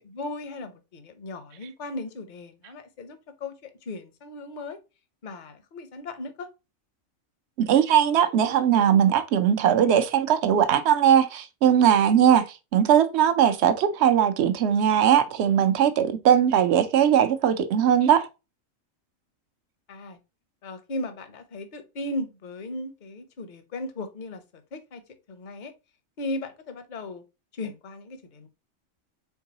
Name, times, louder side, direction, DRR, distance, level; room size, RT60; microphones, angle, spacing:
voice 1, 0.1-4.8 5.2-6.5 19.9-20.2 20.6-25.0 25.3-25.7 26.2-27.2 27.5-28.5, left 2 dB, 45° left, 0.7 m, -36 dB
voice 2, 7.6-12.5 12.7-18.3, right 9 dB, 65° right, 0.8 m, -20 dB
4.6 x 3.6 x 2.8 m
omnidirectional pair, 1.4 m